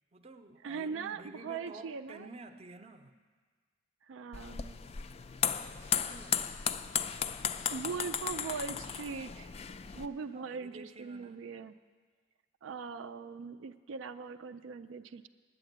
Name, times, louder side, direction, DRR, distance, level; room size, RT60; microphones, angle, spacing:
voice 1, 0.1-3.1 5.7-6.7 10.3-11.4, right 2 dB, 30° right, 8 dB, 0.5 m, -51 dB
voice 2, 0.6-2.3 4.1-4.8 7.7-9.5 10.0-11.7 12.6-15.3, right 5 dB, 80° right, 9 dB, 0.4 m, -40 dB
sound 1, 4.3-10.1, left 8 dB, 30° left, 0.3 m, -35 dB
9.9 x 8.1 x 9.2 m, 1.5 s
head